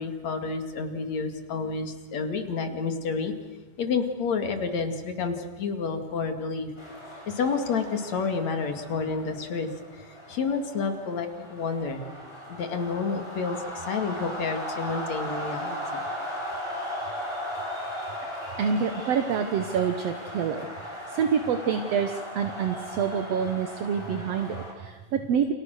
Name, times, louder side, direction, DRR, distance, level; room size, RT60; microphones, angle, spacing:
voice 1, 0.0-3.3 3.8-6.7 7.3-12.0 12.5-16.0, left 5 dB, 55° left, 6 dB, 3.3 m, -30 dB
sound 1, 6.8-24.7, equal, 5° left, 7.0 m, -37 dB
voice 2, 18.6-20.7 21.1-25.5, right 7 dB, 60° right, 8 dB, 2.0 m, -27 dB
29.5 x 29.0 x 6.5 m, 1.2 s
omnidirectional pair, 3.9 m